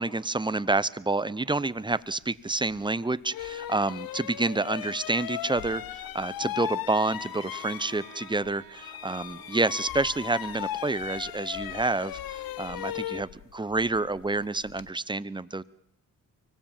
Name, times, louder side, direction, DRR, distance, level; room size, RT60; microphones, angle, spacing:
voice 1, 0.0-15.6, right 2 dB, 15° right, 17 dB, 0.8 m, -28 dB
sound 1, 2.7-2.8 3.3-8.5 8.7-14.9, left 13 dB, 80° left, 0.8 m, -37 dB
Bowed string instrument, 6.8-11.9, right 5 dB, 60° right, 2.4 m, -52 dB
24.5 x 17.5 x 7.3 m, 0.75 s
cardioid pair, 70°, 35 cm